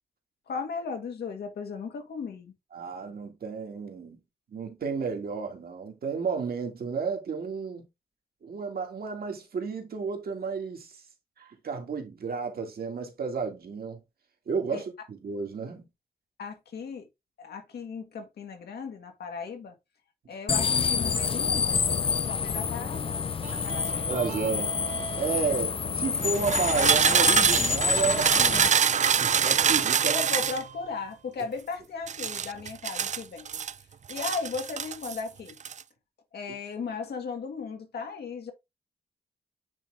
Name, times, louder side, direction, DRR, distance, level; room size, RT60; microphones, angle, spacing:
voice 1, 0.5-2.5 14.7-14.8 16.4-17.1 17.4-19.7 20.3-23.3 23.5-24.1 30.0-33.6 34.1-35.6 36.3-38.5, left 5 dB, 85° left, 1.8 m, -36 dB
voice 2, 2.7-4.2 4.5-7.9 8.4-11.0 11.4-14.0 14.5-15.8 24.0-24.7 25.2-28.7 29.2-30.2, right 5 dB, 70° right, 2.0 m, -32 dB
sound 1, 20.5-28.7, left 6 dB, 35° left, 0.4 m, -28 dB
sound 2, 23.4-25.4 26.2-30.6 32.1-33.7 34.1-35.2 35.5-35.8, right 7 dB, 50° right, 0.4 m, -26 dB
8.8 x 3.7 x 3.5 m
cardioid pair, 90°, 16 cm